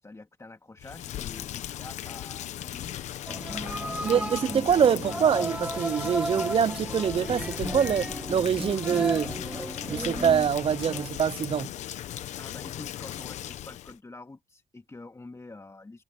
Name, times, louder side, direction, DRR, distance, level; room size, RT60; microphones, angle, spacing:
voice 1, 0.0-3.0 3.6-4.2 12.4-16.0, left 2 dB, 25° left, 2.6 m, -47 dB
Rain, 0.8-14.0, left 12 dB, 85° left, 1.0 m, -37 dB
sound 1, 3.3-11.1, right 1 dB, 10° right, 1.2 m, -35 dB
voice 2, 4.0-9.4 9.9-11.7, right 8 dB, 50° right, 0.6 m, -25 dB
sound 2, 4.9-10.0, left 4 dB, 45° left, 3.4 m, -49 dB
cardioid pair, 60°, 12 cm